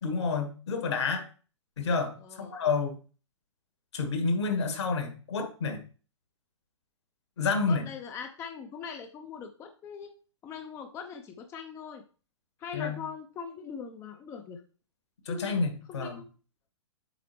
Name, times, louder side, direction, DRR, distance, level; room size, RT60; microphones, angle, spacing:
voice 1, 0.0-1.2 1.8-2.1 2.4-3.0 3.9-5.8 7.4-7.8 12.7-13.0 15.3-16.2, left 4 dB, 60° left, 5 dB, 1.8 m, -29 dB
voice 2, 2.2-2.5 7.7-10.1 10.4-12.0 12.6-14.6 15.2-15.6 15.9-16.2, left 6 dB, 15° left, 5 dB, 0.6 m, -41 dB
7.8 x 4.9 x 3.0 m, 0.37 s
figure-of-eight pair, 115°, 16 cm